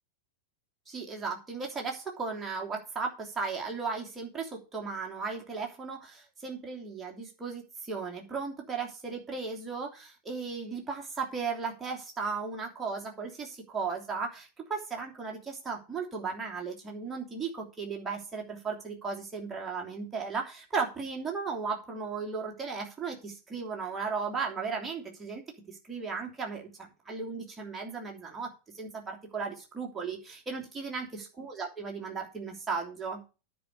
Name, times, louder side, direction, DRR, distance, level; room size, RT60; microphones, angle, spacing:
voice 1, 0.9-25.4 25.7-33.2, right 5 dB, 15° right, -1 dB, 3.0 m, -36 dB
10.0 x 4.9 x 7.9 m, 0.32 s
figure-of-eight pair, 90°, 0 cm